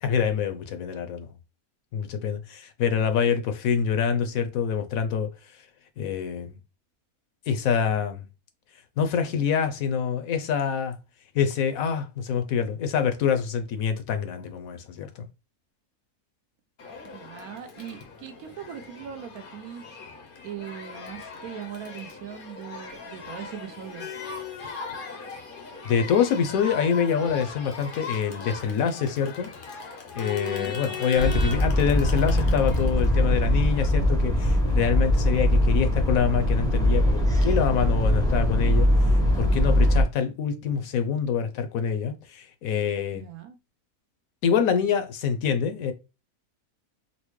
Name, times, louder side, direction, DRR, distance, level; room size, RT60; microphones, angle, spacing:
voice 1, 0.0-1.3 1.9-5.3 6.0-6.5 7.5-8.2 9.0-11.0 11.3-15.3 25.8-29.5 30.1-43.2 44.4-45.9, left 7 dB, 70° left, 1.0 m, -26 dB
Crowd, 16.8-33.9, left 5 dB, 55° left, 0.6 m, -39 dB
voice 2, 17.1-19.8 20.4-24.1 30.5-30.8 43.1-43.6, right 9 dB, 75° right, 1.1 m, -40 dB
sound 1, 31.2-40.0, left 1 dB, 5° left, 0.4 m, -22 dB
4.1 x 2.0 x 3.1 m
omnidirectional pair, 1.6 m